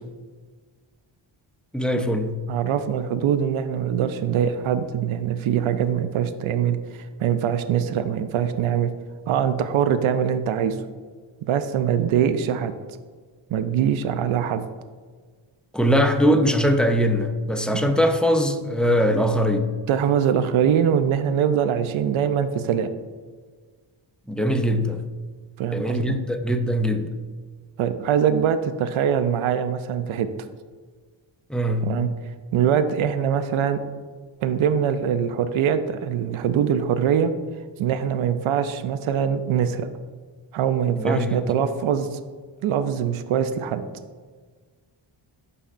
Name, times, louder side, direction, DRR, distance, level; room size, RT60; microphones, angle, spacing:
voice 1, 1.7-2.4 15.7-19.7 24.3-25.0 25.7-27.1 31.5-31.9 41.0-41.5, equal, ahead, 6 dB, 0.3 m, -21 dB
voice 2, 2.5-8.9 9.3-10.8 11.5-12.7 13.5-14.6 19.9-22.9 25.6-26.2 27.8-30.3 31.8-32.1 32.5-33.8 34.4-37.3 37.8-39.9 40.5-42.2 42.6-43.8, right 8 dB, 75° right, 10 dB, 0.5 m, -23 dB
11.0 x 4.1 x 2.5 m, 1.5 s
wide cardioid pair, 105°, 50 cm